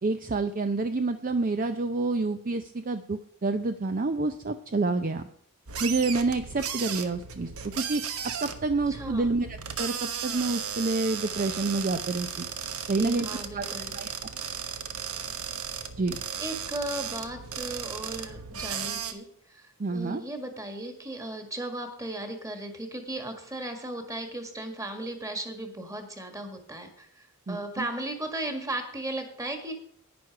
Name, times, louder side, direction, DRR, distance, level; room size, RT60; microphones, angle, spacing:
voice 1, 0.0-5.2 5.8-7.5 7.8-8.0 8.4-9.9 10.2-12.5 12.9-13.3 13.5-13.6 13.9-14.0 16.0-16.2 19.8-20.2 27.5-27.9, right 3 dB, 35° right, 9 dB, 0.5 m, -28 dB
sound 1, 5.7-19.1, right 7 dB, 75° right, 1.2 m, -35 dB
voice 2, 8.9-9.3 13.0-14.0 16.4-29.7, right 1 dB, 15° right, 5 dB, 1.8 m, -36 dB
11.0 x 9.5 x 4.8 m, 0.64 s
head